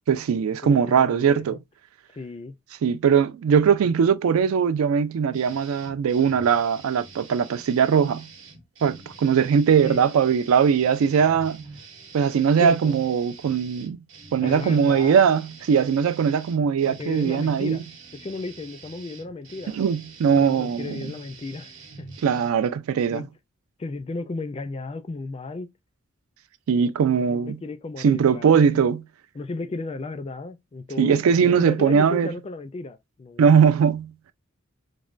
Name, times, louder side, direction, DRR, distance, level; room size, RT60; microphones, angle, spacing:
voice 1, 0.1-1.6 2.8-8.3 8.8-11.7 12.1-14.0 14.3-17.8 19.7-21.1 22.2-23.2 26.7-27.6 28.0-29.0 31.0-32.3 33.4-34.1, right 7 dB, 90° right, 0.3 m, -20 dB
voice 2, 0.6-1.6 2.1-2.6 9.8-10.0 12.6-13.0 14.4-15.2 16.8-17.8 18.2-19.8 20.3-22.1 23.1-23.3 23.8-25.7 27.2-28.9 29.3-33.5, left 3 dB, 30° left, 0.3 m, -34 dB
sound 1, 5.3-22.5, right 4 dB, 65° right, 0.9 m, -46 dB
3.2 x 2.1 x 2.4 m
head